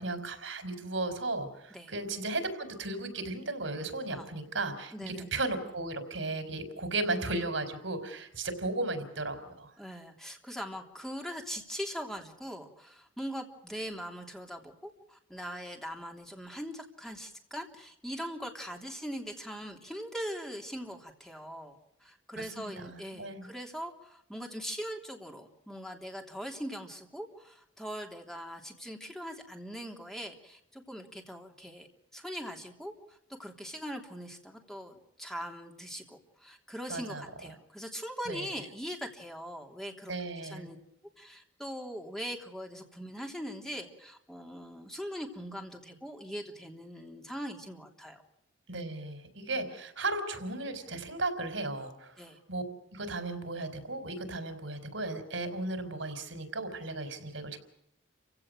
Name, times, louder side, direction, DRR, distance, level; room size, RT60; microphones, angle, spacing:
voice 1, 0.0-9.7 22.3-23.5 36.9-37.2 38.3-38.5 40.1-40.7 48.7-52.6 52.9-57.6, right 2 dB, 75° right, 8 dB, 4.4 m, -35 dB
voice 2, 4.9-5.2 9.8-31.9 32.1-40.8 41.2-48.2 52.2-52.4, equal, ahead, 2 dB, 3.4 m, -41 dB
30.0 x 17.0 x 6.4 m, 0.78 s
head